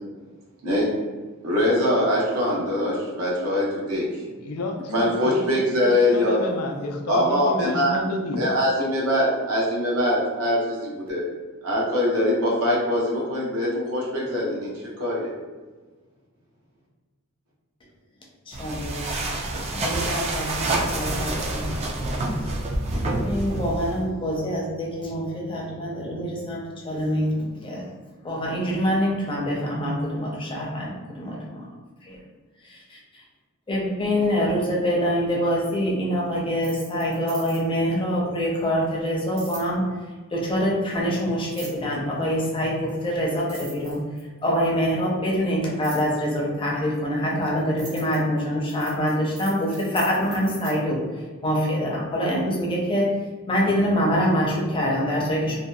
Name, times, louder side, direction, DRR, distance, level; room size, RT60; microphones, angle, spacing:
voice 1, 1.4-4.1 4.9-6.4 7.1-8.0 8.3-11.2 11.6-14.7 15.0-15.3, left 1 dB, 75° right, -4 dB, 0.7 m, -23 dB
voice 2, 4.3-8.5, left 2 dB, 85° left, 3 dB, 0.4 m, -30 dB
voice 3, 18.5-19.3 19.7-21.8 23.0-27.9 28.2-31.7 32.1-32.2 32.7-33.0 33.7-39.8 40.3-44.0 44.4-51.0 51.4-53.1 53.5-55.6, equal, 25° left, -3 dB, 0.5 m, -25 dB
sound 1, 18.5-24.1, right 2 dB, 30° right, 0.3 m, -27 dB
sound 2, 36.5-37.8 39.4-39.7 41.5-41.9 42.9-43.0 43.3-44.4 45.8-46.1 46.9-50.7, right 3 dB, 50° right, 0.9 m, -42 dB
2.6 x 2.2 x 2.2 m, 1.3 s
head